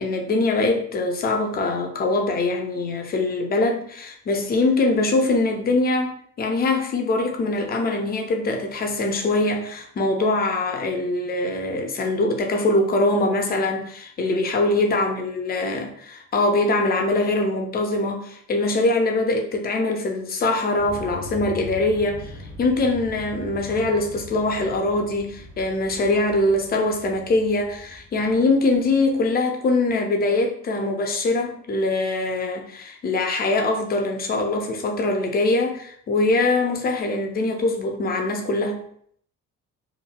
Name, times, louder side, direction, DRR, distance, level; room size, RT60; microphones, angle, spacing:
voice 1, 0.0-38.8, left 2 dB, 20° left, 3 dB, 0.5 m, -23 dB
sound 1, 20.8-29.2, left 2 dB, 30° right, 0.6 m, -41 dB
3.0 x 2.6 x 2.2 m, 0.63 s
figure-of-eight pair, 50°, 43 cm